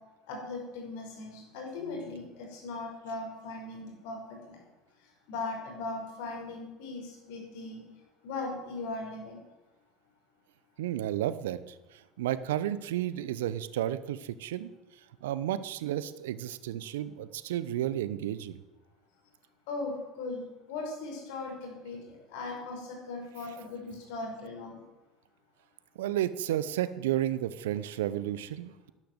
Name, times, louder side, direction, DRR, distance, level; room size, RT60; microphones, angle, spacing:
voice 1, 0.3-4.2 4.5-4.6 5.3-7.8 8.2-9.4 19.7-20.4 20.7-24.8, left 3 dB, 65° left, 1 dB, 5.6 m, -38 dB
voice 2, 10.8-14.7 15.2-18.6 25.9-28.9, right 12 dB, 75° right, 15 dB, 0.8 m, -32 dB
11.5 x 11.0 x 8.0 m, 1.1 s
hypercardioid pair, 70°, 0 cm